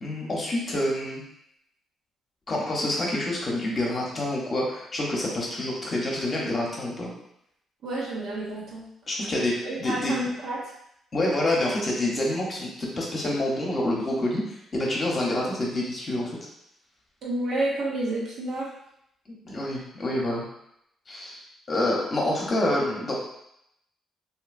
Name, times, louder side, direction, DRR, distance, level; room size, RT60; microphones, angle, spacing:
voice 1, 0.0-1.2 2.5-7.1 9.1-9.5 9.8-10.1 11.1-14.4 14.7-16.3 19.3-20.5 21.1-21.4 21.7-23.1, left 1 dB, 35° left, -3 dB, 0.9 m, -27 dB
voice 2, 7.8-8.8 9.6-10.6 17.2-18.7, right 1 dB, 70° right, -5 dB, 1.0 m, -29 dB
2.8 x 2.7 x 2.6 m, 0.77 s
cardioid pair, 90°, 0 cm